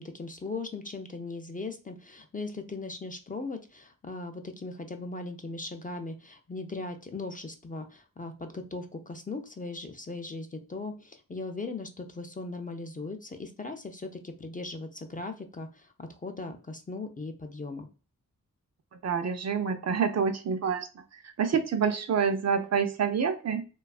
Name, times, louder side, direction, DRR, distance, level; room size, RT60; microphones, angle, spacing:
voice 1, 0.0-17.9, left 3 dB, 25° left, 5 dB, 0.4 m, -38 dB
voice 2, 18.9-20.9 21.2-23.6, right 6 dB, 50° right, 8 dB, 0.4 m, -27 dB
2.7 x 2.3 x 2.3 m, 0.35 s
wide cardioid pair, 75°, 33 cm